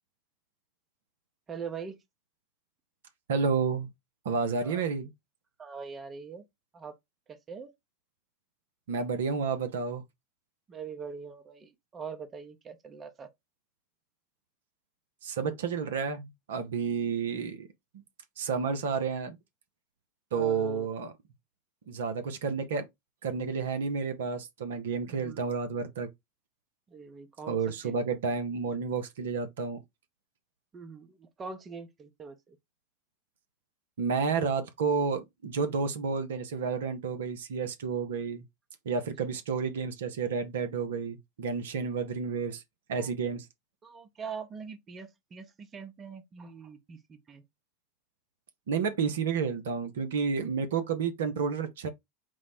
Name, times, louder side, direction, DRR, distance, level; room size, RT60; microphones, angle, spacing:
voice 1, 1.5-2.0 4.6-4.8 5.6-6.4 6.7-7.0 7.3-7.7 10.7-13.3 20.3-20.9 25.1-25.4 26.9-28.0 30.7-32.6 42.9-43.1 43.8-47.4, right 6 dB, 25° right, 0.7 m, -43 dB
voice 2, 3.3-3.9 4.2-5.1 8.9-10.0 15.2-17.7 18.4-19.4 20.3-21.1 21.9-22.9 23.2-26.1 27.5-29.8 34.0-38.4 38.9-42.6 42.9-43.5 48.7-51.9, right 5 dB, 70° right, 0.5 m, -30 dB
4.5 x 2.0 x 4.1 m
figure-of-eight pair, 85°, 0 cm